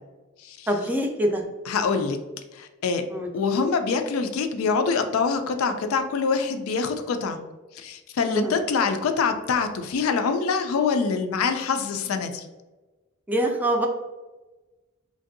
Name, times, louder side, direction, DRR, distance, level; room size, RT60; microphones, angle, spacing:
voice 1, 0.7-1.4 3.1-3.3 8.3-8.6 13.3-13.9, right 1 dB, 10° right, 2 dB, 0.4 m, -24 dB
voice 2, 1.7-2.2 2.5-3.0 3.3-7.4 7.7-12.5, left 5 dB, 80° left, 7 dB, 0.4 m, -25 dB
3.2 x 2.6 x 2.5 m, 1.2 s
head